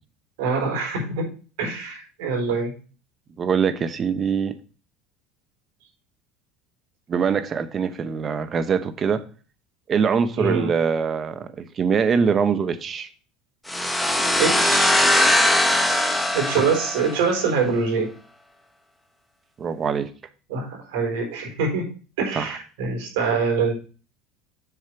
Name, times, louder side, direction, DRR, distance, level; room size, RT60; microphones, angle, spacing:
voice 1, 0.4-1.3 1.6-2.7 10.4-10.7 14.3-14.9 16.3-18.1 20.5-21.9 22.2-23.7, right 5 dB, 80° right, 4.2 m, -24 dB
voice 2, 3.4-4.6 7.1-9.2 9.9-13.1 19.6-20.1 22.3-22.6, right 6 dB, 35° right, 1.0 m, -23 dB
sound 1, 13.7-17.4, left 1 dB, 5° left, 1.2 m, -20 dB
7.3 x 6.6 x 4.5 m
supercardioid pair, 100°, 0 cm